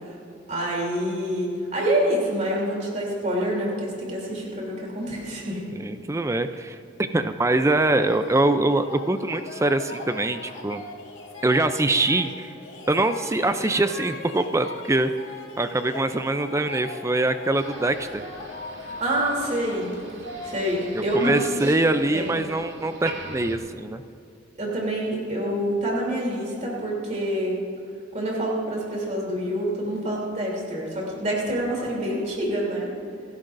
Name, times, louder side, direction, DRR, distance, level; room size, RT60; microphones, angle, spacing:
voice 1, 0.5-5.6 18.8-19.9 20.4-21.7 22.1-22.4 24.5-27.5 28.1-32.9, right 1 dB, 35° right, -3 dB, 3.2 m, -26 dB
voice 2, 5.8-10.8 11.4-12.5 12.9-15.1 15.6-18.2 20.9-24.0, right 2 dB, 15° right, 9 dB, 0.4 m, -23 dB
sound 1, 7.8-21.1, left 2 dB, 75° left, 1.9 m, -40 dB
Motor vehicle (road), 17.5-23.6, right 2 dB, 60° right, 2.2 m, -42 dB
29.5 x 11.5 x 2.6 m, 2.5 s
head